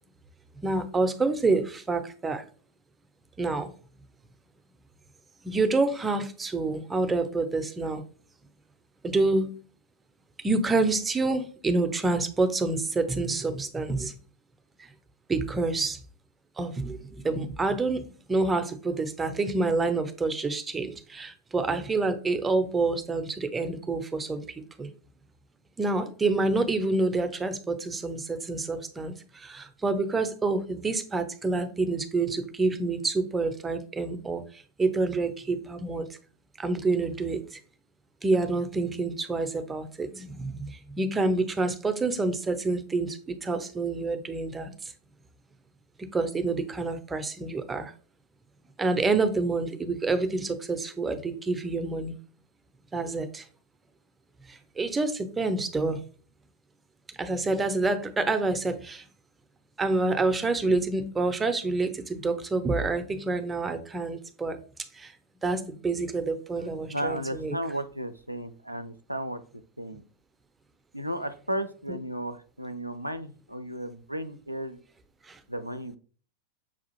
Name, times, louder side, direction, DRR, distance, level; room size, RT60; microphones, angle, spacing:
voice 1, 0.6-2.4 3.4-3.7 5.4-8.0 9.0-9.6 10.4-14.1 14.8-14.9 15.3-16.0 16.6-24.9 25.8-36.1 36.6-37.6 38.2-44.9 46.1-47.9 48.8-52.1 52.9-53.5 54.5-56.0 57.2-59.1 59.8-64.6 64.9-65.1 65.4-67.6 71.9-72.0 75.3-75.4, right 3 dB, 15° right, 0.5 m, -28 dB
voice 2, 66.9-69.4 69.8-70.0 70.9-74.8 75.5-76.0, right 1 dB, 90° right, 0.3 m, -34 dB
6.0 x 2.4 x 2.9 m
figure-of-eight pair, 90°, 0 cm